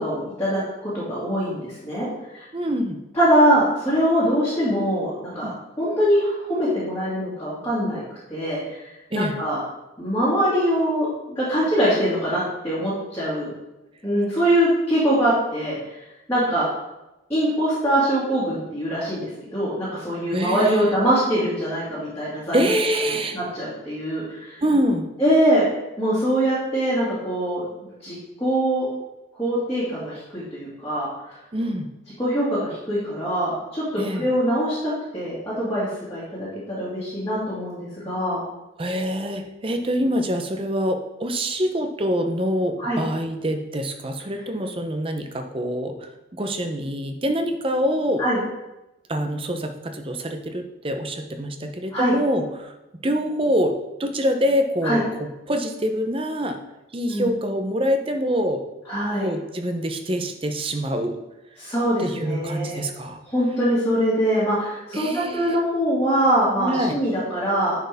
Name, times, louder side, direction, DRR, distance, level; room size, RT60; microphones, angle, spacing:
voice 1, 0.0-2.1 2.3-2.4 3.1-5.5 5.8-8.0 8.3-9.6 10.0-13.5 14.0-16.0 16.3-16.7 17.3-22.7 23.1-24.6 25.2-25.6 26.0-28.9 29.4-31.4 32.2-33.8 34.1-38.4 42.8-43.0 48.2-48.4 51.9-52.1 54.8-55.0 57.1-57.3 58.9-59.3 61.6-62.8 63.3-67.8, equal, 15° left, -11 dB, 2.1 m, -23 dB
voice 2, 2.5-3.0 5.4-5.5 9.1-9.3 20.3-20.8 22.5-23.4 24.6-25.1 31.5-31.9 34.0-34.3 38.8-46.1 46.4-48.2 49.1-52.7 53.0-53.7 54.0-56.6 56.9-58.6 59.1-61.2 62.0-63.2 64.9-65.6 66.6-67.0, equal, 25° right, 5 dB, 0.6 m, -25 dB
9.9 x 4.5 x 3.5 m, 0.96 s
head